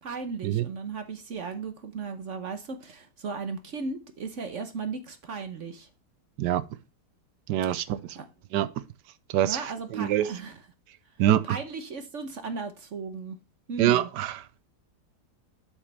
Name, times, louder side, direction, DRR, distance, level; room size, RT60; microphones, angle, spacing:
voice 1, 0.0-5.9 7.7-7.8 8.1-8.3 9.4-10.6 11.4-13.4 13.7-14.1, right 4 dB, 50° right, 1.1 m, -36 dB
voice 2, 7.5-8.2 8.5-8.8 9.3-9.6 9.9-10.3 11.2-11.6 13.8-14.5, right 12 dB, 80° right, 1.2 m, -25 dB
7.8 x 6.3 x 3.3 m
omnidirectional pair, 1.8 m